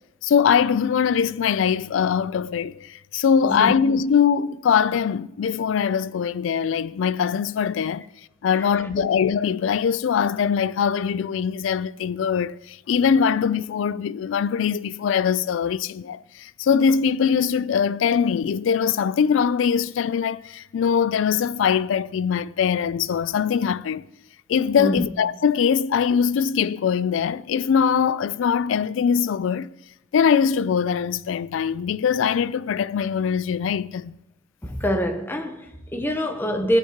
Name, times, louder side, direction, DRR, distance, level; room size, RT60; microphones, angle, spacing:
voice 1, 0.2-8.0 8.4-24.1 24.5-29.7 30.1-34.1, left 7 dB, 70° left, 0.3 m, -22 dB
voice 2, 3.4-3.7 8.5-8.9 24.8-25.0 34.6-36.8, equal, 10° left, 0.8 m, -25 dB
15.0 x 9.3 x 2.9 m
head